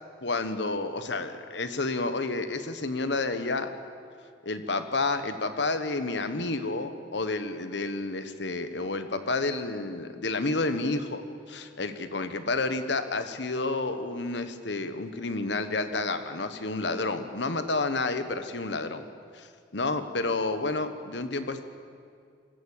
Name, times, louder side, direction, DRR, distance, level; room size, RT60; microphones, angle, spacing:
voice 1, 0.2-3.7 4.4-11.2 11.5-19.1 19.3-19.5 19.7-21.6, left 3 dB, 65° left, 10 dB, 1.3 m, -30 dB
23.0 x 14.5 x 8.6 m, 2.3 s
head